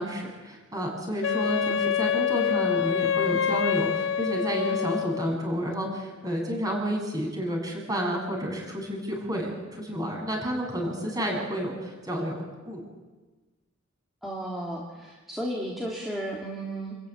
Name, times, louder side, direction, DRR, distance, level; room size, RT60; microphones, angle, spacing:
voice 1, 0.0-12.8, equal, 20° right, 0 dB, 7.7 m, -30 dB
Wind instrument woodwind instrument, 1.2-5.3, left 8 dB, 65° left, 0.7 m, -26 dB
voice 2, 14.2-17.0, right 1 dB, ahead, -4 dB, 3.3 m, -34 dB
28.5 x 14.0 x 10.0 m, 1.2 s
head